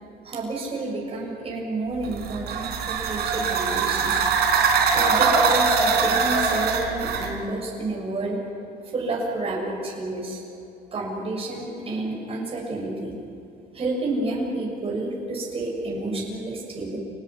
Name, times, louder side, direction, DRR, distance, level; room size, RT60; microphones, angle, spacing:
voice 1, 0.2-4.2 4.9-8.4 8.9-10.4 10.9-13.2 13.7-17.0, right 2 dB, 35° right, -2 dB, 6.8 m, -29 dB
sound 1, 2.0-7.3, right 5 dB, 70° right, 3.9 m, -22 dB
28.5 x 19.0 x 9.7 m, 2.8 s
cardioid pair, 110°, 17 cm